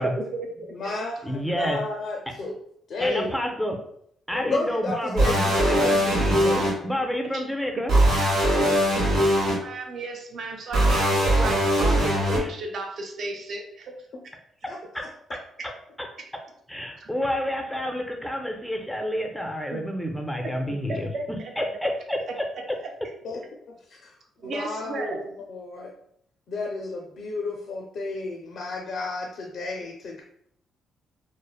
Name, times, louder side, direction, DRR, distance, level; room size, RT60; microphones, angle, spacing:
voice 1, 0.0-0.5 7.2-7.4 7.8-7.9 9.5-13.9 15.6-15.7 17.0-17.1 19.7-19.8 20.7-21.5 22.8-22.9 24.4-25.2, right 2 dB, 60° right, 2 dB, 0.5 m, -34 dB
voice 2, 0.7-2.6 2.9-3.4 4.3-5.5 14.7-15.1 23.2-25.9 26.5-30.2, left 3 dB, 60° left, 0 dB, 0.4 m, -32 dB
voice 3, 1.2-1.8 3.0-3.8 4.3-7.9 12.4-12.5 14.9-15.0 16.7-22.5, equal, ahead, 2 dB, 0.5 m, -29 dB
sound 1, 5.2-6.7 7.9-9.5 10.7-12.4, equal, 85° right, 1.0 m, -21 dB
3.1 x 2.0 x 2.3 m, 0.69 s
cardioid pair, 90°, 0 cm